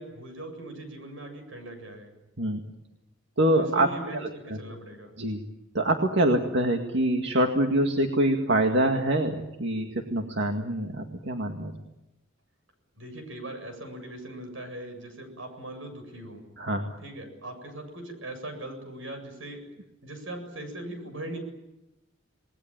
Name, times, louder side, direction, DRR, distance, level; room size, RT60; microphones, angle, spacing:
voice 1, 0.0-2.1 3.5-5.1 13.0-16.4 17.0-19.6 20.0-21.4, right 1 dB, 85° right, 7 dB, 7.7 m, -40 dB
voice 2, 3.4-4.6 5.2-5.4 5.7-11.7 16.6-16.9, right 1 dB, 65° right, 3 dB, 2.1 m, -25 dB
28.5 x 20.0 x 9.0 m, 0.93 s
head